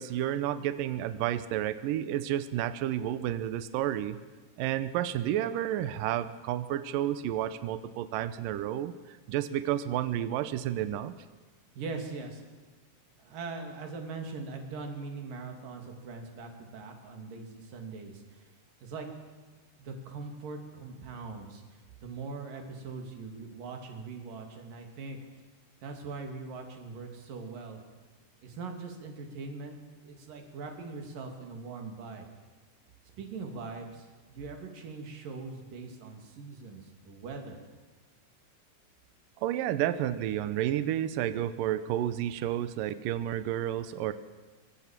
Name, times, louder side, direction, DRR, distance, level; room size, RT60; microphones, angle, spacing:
voice 1, 0.0-4.2 4.6-11.2 39.4-44.1, right 12 dB, 85° right, 12 dB, 1.9 m, -31 dB
voice 2, 11.7-12.5 13.2-18.4 18.8-19.1 19.8-25.2 25.8-27.8 28.4-32.3 33.2-37.6, right 4 dB, 50° right, 4 dB, 4.3 m, -41 dB
24.5 x 24.0 x 7.6 m, 1.3 s
omnidirectional pair, 5.2 m